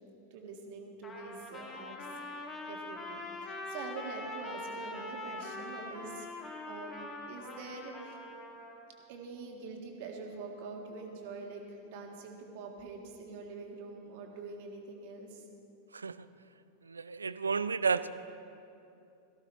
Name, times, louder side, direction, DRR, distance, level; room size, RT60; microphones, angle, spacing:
voice 1, 0.3-2.1 2.4-8.2 9.1-15.4, right 4 dB, 50° right, 1 dB, 1.9 m, -45 dB
Trumpet, 1.0-8.8, left 2 dB, 20° left, 1.7 m, -43 dB
voice 2, 15.9-16.3 16.9-18.1, right 5 dB, 75° right, 15 dB, 0.4 m, -32 dB
17.5 x 14.5 x 3.4 m, 2.7 s
figure-of-eight pair, 90°, 0 cm